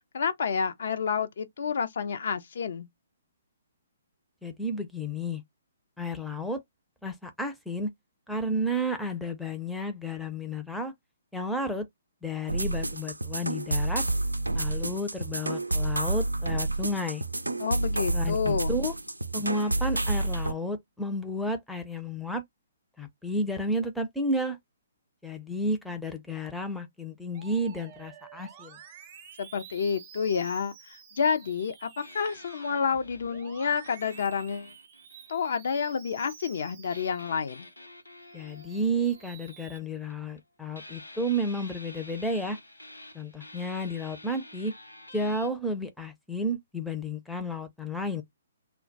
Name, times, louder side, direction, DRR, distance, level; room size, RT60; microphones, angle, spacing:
voice 1, 0.1-2.9 17.6-18.8 29.4-31.9 32.1-34.7 35.3-37.7, left 6 dB, 60° left, 0.5 m, -29 dB
voice 2, 4.4-5.4 6.0-6.6 7.0-7.9 8.3-10.9 11.3-11.9 12.2-14.0 14.5-17.2 18.1-18.9 19.3-22.4 23.0-24.6 25.2-28.8 38.3-42.6 43.1-44.7 45.1-48.2, equal, ahead, 0.5 m, -32 dB
sound 1, 12.5-20.5, right 2 dB, 85° right, 0.4 m, -29 dB
Musical instrument, 27.3-37.8 38.2-39.8, right 8 dB, 35° right, 0.7 m, -51 dB
sound 2, 32.0-35.9 36.9-40.4 40.7-45.5, left 1 dB, 85° left, 0.9 m, -49 dB
2.2 x 2.2 x 3.8 m
figure-of-eight pair, 130°, 0 cm